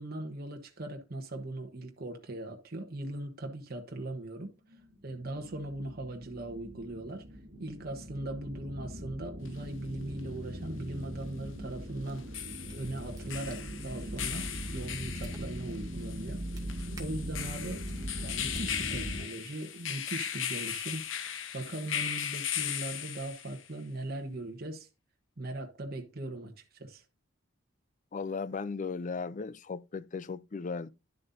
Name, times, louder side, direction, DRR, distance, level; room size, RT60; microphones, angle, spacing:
voice 1, 0.0-12.3 12.7-16.4 17.0-17.8 18.2-21.0 21.5-24.9 25.4-27.0, right 1 dB, 50° right, 1.1 m, -39 dB
sound 1, 4.6-19.2, equal, 75° right, 1.7 m, -41 dB
sound 2, 9.5-9.6 12.1-23.7, left 9 dB, 65° left, 0.9 m, -38 dB
sound 3, 12.4-19.5, right 1 dB, 20° right, 2.1 m, -55 dB
voice 2, 28.1-30.9, left 4 dB, 40° left, 0.4 m, -36 dB
11.0 x 7.6 x 2.7 m
head